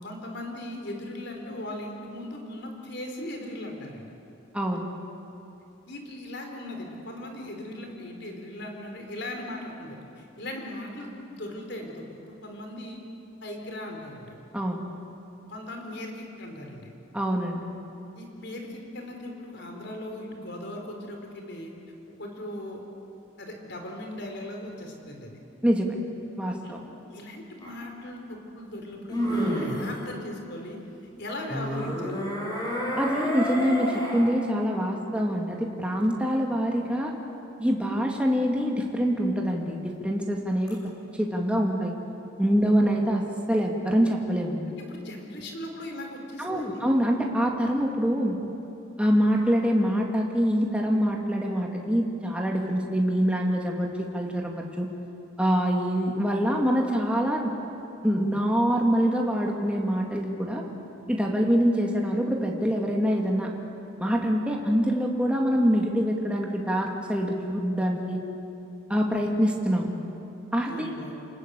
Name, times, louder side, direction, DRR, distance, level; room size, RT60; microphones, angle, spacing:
voice 1, 0.0-4.1 5.9-13.0 13.4-14.3 15.5-16.9 18.1-21.7 22.2-22.8 23.4-25.4 26.6-26.7 27.1-30.8 31.2-32.3 42.6-42.7 44.8-46.8 70.6-71.2, left 1 dB, 60° left, 2 dB, 4.3 m, -38 dB
voice 2, 4.5-4.9 14.5-14.8 17.1-17.6 25.6-26.0 26.4-26.8 33.0-37.1 37.6-40.8 41.2-41.9 42.4-43.2 43.5-44.6 46.4-48.4 49.0-54.9 55.4-57.5 58.0-60.6 61.1-63.5 64.0-68.2 68.9-69.9 70.5-70.9, equal, 5° right, -1 dB, 2.3 m, -25 dB
sound 1, 27.6-27.7 29.1-29.9 31.5-34.3 40.7-40.8, equal, 20° left, 6.6 m, -29 dB
29.0 x 20.0 x 8.4 m, 2.8 s
head